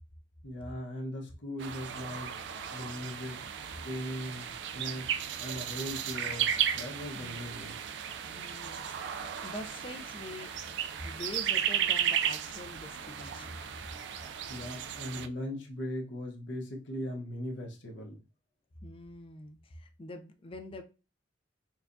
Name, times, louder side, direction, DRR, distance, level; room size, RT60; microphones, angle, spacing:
voice 1, 0.4-2.3 2.7-5.1 5.4-7.8 14.5-18.2, left 1 dB, 75° left, 1.0 m, -39 dB
sound 1, 1.6-15.3, right 9 dB, 65° right, 0.3 m, -35 dB
voice 2, 8.2-10.6 11.0-13.6 18.8-20.8, left 1 dB, 30° left, 0.4 m, -45 dB
4.4 x 2.3 x 2.6 m
head